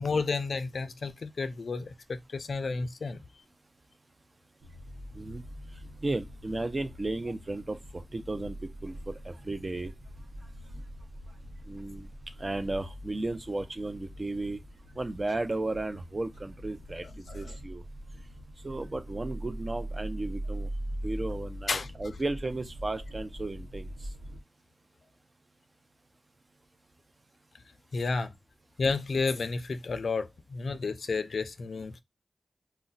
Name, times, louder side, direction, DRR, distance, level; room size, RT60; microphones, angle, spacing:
voice 1, 0.0-3.2 17.3-17.6 21.7-21.9 27.9-28.3 28.8-32.0, left 4 dB, 75° left, 0.3 m, -31 dB
sound 1, 4.6-24.4, right 1 dB, 90° right, 0.8 m, -42 dB
voice 2, 6.0-8.6 8.8-9.9 11.7-12.1 12.4-14.6 15.0-17.1 17.3-17.8 18.6-20.7 21.0-23.9, right 2 dB, 40° right, 0.5 m, -34 dB
2.4 x 2.1 x 3.8 m
cardioid pair, 50°, 0 cm